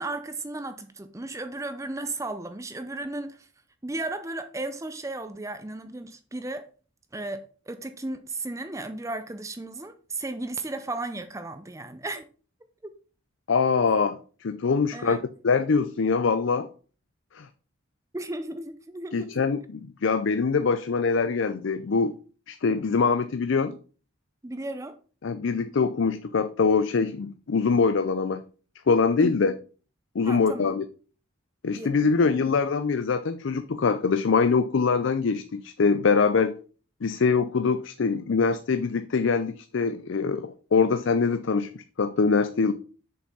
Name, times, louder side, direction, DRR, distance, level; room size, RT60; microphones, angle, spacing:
voice 1, 0.0-3.5 3.8-6.7 7.1-12.2 12.8-12.9 14.9-15.3 18.1-19.4 24.4-25.0 29.2-29.3 30.2-30.7 31.7-32.3, right 2 dB, 15° right, 0.5 m, -35 dB
voice 2, 13.5-15.2 15.4-16.7 17.3-17.5 19.1-22.1 22.5-23.8 25.2-28.4 28.9-29.5 30.1-30.9 31.6-36.5 37.0-42.7, left 5 dB, 65° left, 0.5 m, -23 dB
6.9 x 5.2 x 5.4 m
head